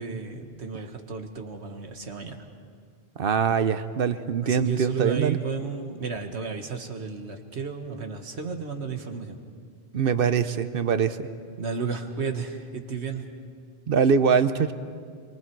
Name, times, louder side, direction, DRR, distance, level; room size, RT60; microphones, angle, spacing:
voice 1, 0.0-2.5 4.4-9.4 11.6-13.3, right 5 dB, 90° right, 5 dB, 1.8 m, -33 dB
voice 2, 3.2-5.4 9.9-11.3 13.9-14.7, right 6 dB, 60° right, 11 dB, 1.0 m, -23 dB
27.5 x 23.5 x 4.7 m, 2.1 s
omnidirectional pair, 1.1 m